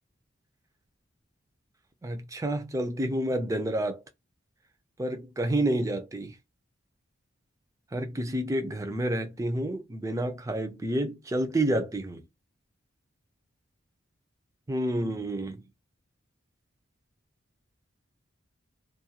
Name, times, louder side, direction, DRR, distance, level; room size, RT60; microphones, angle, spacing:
voice 1, 2.0-4.0 5.0-6.3 7.9-12.2 14.7-15.6, right 1 dB, 15° right, 0.3 m, -29 dB
2.3 x 2.1 x 2.7 m
head